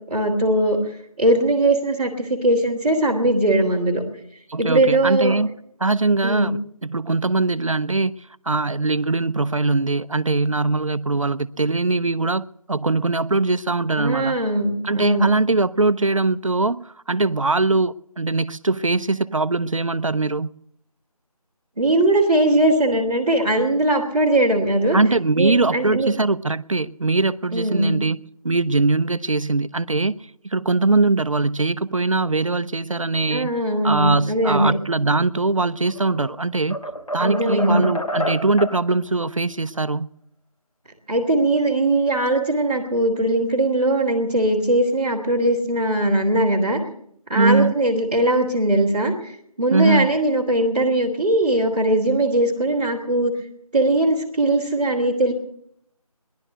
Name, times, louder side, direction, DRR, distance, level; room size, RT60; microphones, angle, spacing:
voice 1, 0.1-0.8 1.2-4.0 4.6-5.3 6.2-6.5 14.0-15.3 21.8-25.0 25.4-26.1 27.5-27.9 33.3-34.7 37.2-37.9 41.1-46.8 47.3-53.3 53.7-55.3, right 1 dB, 15° right, 2.0 m, -20 dB
voice 2, 4.5-5.5 5.8-8.2 8.5-14.4 14.8-20.5 24.9-28.2 28.4-30.1 30.4-33.5 33.8-36.8 37.1-40.1 47.3-47.8 49.7-50.1, right 3 dB, 55° right, 0.5 m, -21 dB
sound 1, 35.8-36.3 36.7-38.8, equal, 65° left, 3.3 m, -28 dB
18.5 x 11.0 x 6.7 m
figure-of-eight pair, 175°, 20 cm